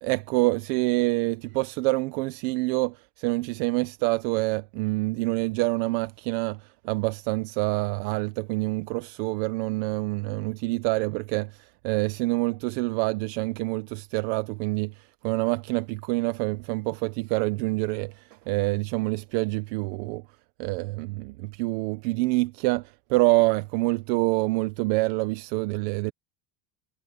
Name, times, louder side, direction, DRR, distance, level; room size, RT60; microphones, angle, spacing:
voice 1, 0.0-14.9 15.2-20.2 20.6-26.1, right 23 dB, 75° right, 1.0 m, -26 dB
cardioid pair, 175°, 49 cm